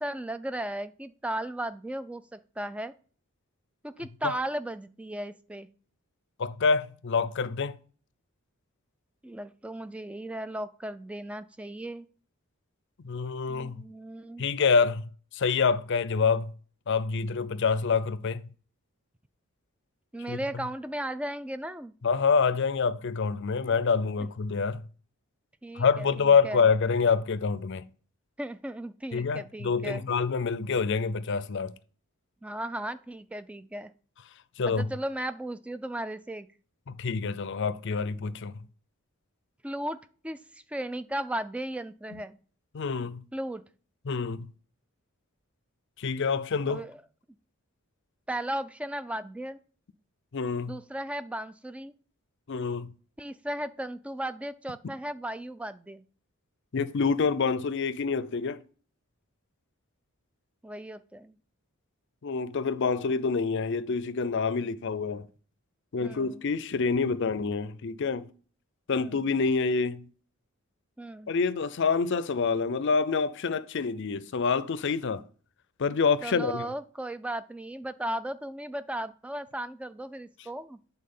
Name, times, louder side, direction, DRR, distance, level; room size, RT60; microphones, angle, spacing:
voice 1, 0.0-2.9 3.8-5.7 9.2-12.1 13.5-14.5 20.1-21.9 25.6-26.6 28.4-30.0 32.4-33.9 34.7-36.5 39.6-42.4 43.3-43.6 46.7-47.0 48.3-49.6 50.7-52.0 53.2-56.0 60.6-61.4 66.0-66.4 68.9-69.3 71.0-71.3 76.2-80.8, right 1 dB, 5° right, 0.3 m, -36 dB
voice 2, 6.4-7.8 13.0-13.8 14.4-15.0 15.3-16.5 16.9-18.4 20.3-20.4 22.0-24.8 25.8-27.9 29.1-31.7 34.6-34.9 36.9-38.5 42.1-42.2 42.7-43.2 44.1-44.5 46.0-46.8 50.3-50.8 52.5-52.9 56.7-58.6 62.2-65.3 65.9-68.3 68.9-70.0 71.3-75.2 75.8-76.7, left 5 dB, 55° left, 0.5 m, -27 dB
8.7 x 4.1 x 5.4 m
head